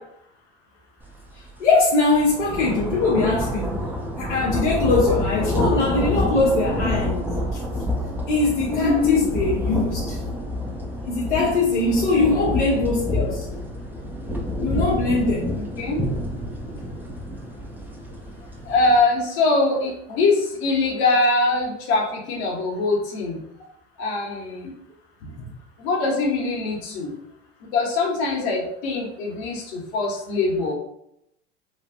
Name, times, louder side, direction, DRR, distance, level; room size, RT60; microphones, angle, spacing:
sound 1, 1.2-1.4 1.7-19.0, left 1 dB, 5° right, 0.4 m, -28 dB
voice 1, 1.6-3.8 4.2-7.6 8.3-10.2 11.1-13.5 14.6-15.5 25.2-25.3, left 3 dB, 90° left, -4 dB, 0.6 m, -22 dB
voice 2, 8.7-9.3 11.4-11.5 15.5-16.0 18.6-23.4 24.0-24.7 25.8-27.1 27.7-30.7, left 3 dB, 65° left, -1 dB, 1.1 m, -22 dB
3.1 x 2.3 x 2.2 m, 0.76 s
hypercardioid pair, 80°, 35 cm